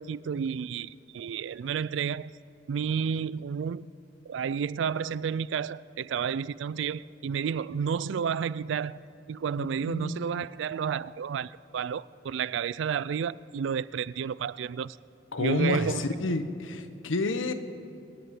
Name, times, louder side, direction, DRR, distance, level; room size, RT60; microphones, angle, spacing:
voice 1, 0.0-2.3 2.7-3.9 4.3-9.0 9.3-15.0 15.4-16.0, right 7 dB, 70° right, 0.3 m, -31 dB
voice 2, 9.6-10.2 15.3-17.5, left 2 dB, 85° left, 0.9 m, -29 dB
26.5 x 10.5 x 4.9 m
head